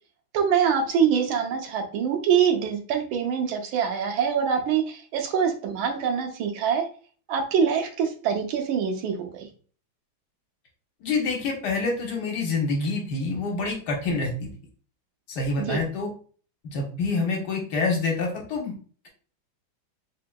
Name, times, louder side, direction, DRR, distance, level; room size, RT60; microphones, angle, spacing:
voice 1, 0.3-6.9 7.3-9.5 15.6-15.8, right 7 dB, 90° right, 4 dB, 1.5 m, -24 dB
voice 2, 11.0-14.5 15.3-16.1 16.6-18.7, left 3 dB, 65° left, 1 dB, 1.3 m, -27 dB
3.7 x 3.4 x 2.2 m, 0.42 s
omnidirectional pair, 2.2 m